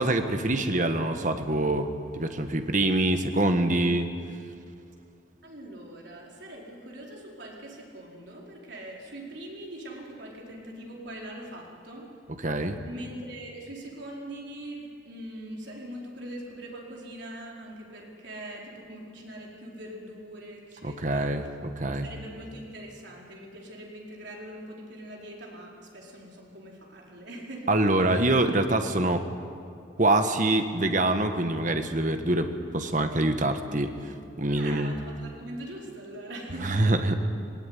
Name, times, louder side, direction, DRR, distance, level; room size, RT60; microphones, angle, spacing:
voice 1, 0.0-4.1 12.4-12.8 20.8-22.1 27.7-29.2 30.0-34.9 36.6-37.2, right 2 dB, 40° right, 7 dB, 1.4 m, -25 dB
voice 2, 5.4-12.1 12.8-21.3 22.0-28.2 34.4-37.0, right 1 dB, 60° right, -2 dB, 4.6 m, -42 dB
19.0 x 18.5 x 9.6 m, 2.4 s
head